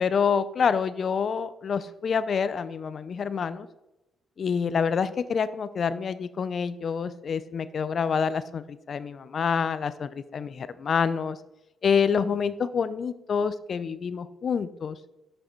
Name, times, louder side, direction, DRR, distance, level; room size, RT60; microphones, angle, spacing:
voice 1, 0.0-3.7 4.4-11.4 11.8-15.0, left 6 dB, 50° left, 15 dB, 0.4 m, -27 dB
7.4 x 6.4 x 4.4 m, 0.96 s
cardioid pair, 105°, 0 cm